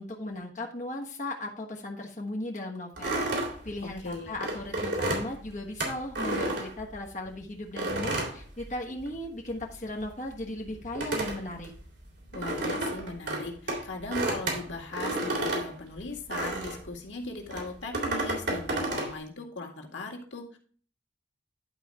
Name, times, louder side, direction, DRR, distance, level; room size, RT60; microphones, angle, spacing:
voice 1, 0.0-3.2 3.6-11.7, left 1 dB, 40° left, -1 dB, 1.4 m, -37 dB
sound 1, 3.0-7.3 7.8-9.3 9.5-16.9 17.5-19.1, right 2 dB, 70° right, 3.4 m, -32 dB
voice 2, 4.0-4.4 12.3-20.6, left 2 dB, 80° left, 1 dB, 2.0 m, -39 dB
11.0 x 4.3 x 4.8 m, 0.43 s
head